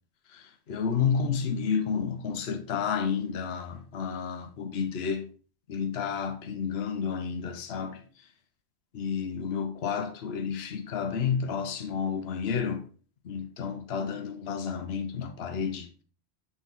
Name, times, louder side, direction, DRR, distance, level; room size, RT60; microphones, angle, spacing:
voice 1, 0.3-5.3 5.7-8.3 8.9-12.9 13.2-16.0, left 6 dB, 70° left, 1.0 m, -31 dB
8.1 x 4.2 x 3.7 m
omnidirectional pair, 1.1 m